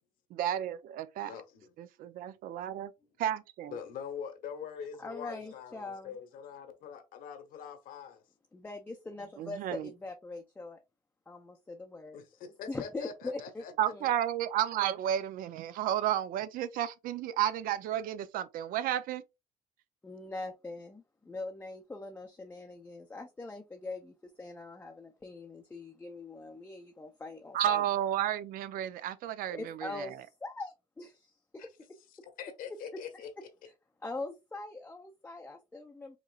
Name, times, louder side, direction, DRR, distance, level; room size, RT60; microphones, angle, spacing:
voice 1, 0.3-1.3 1.8-2.9 3.2-3.7 9.4-9.9 13.8-19.2 27.5-30.1, right 11 dB, 80° right, 0.5 m, -32 dB
voice 2, 1.3-1.7 3.7-8.2 12.1-13.7 31.6-31.7 32.4-33.3, left 7 dB, 80° left, 1.1 m, -43 dB
voice 3, 5.0-6.2 8.5-10.8 11.3-12.2 12.7-14.1 20.0-27.8 29.5-31.7 34.0-36.2, left 3 dB, 10° left, 0.5 m, -42 dB
5.1 x 3.0 x 2.4 m
cardioid pair, 145°, 15 cm